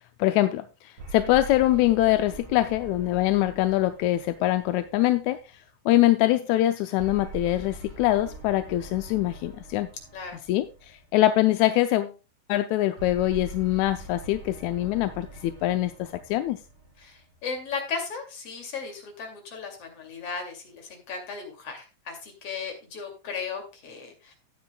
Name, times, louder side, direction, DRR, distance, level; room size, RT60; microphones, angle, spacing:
voice 1, 0.2-5.4 5.9-9.9 10.5-12.1 12.5-16.6, left 15 dB, 80° left, 9 dB, 1.7 m, -23 dB
sound 1, 1.0-5.5 7.0-11.3 13.0-17.5, right 2 dB, 40° right, 3.0 m, -43 dB
voice 2, 17.0-24.3, left 5 dB, 50° left, 3 dB, 3.3 m, -36 dB
14.0 x 9.3 x 2.3 m, 0.30 s
omnidirectional pair, 3.8 m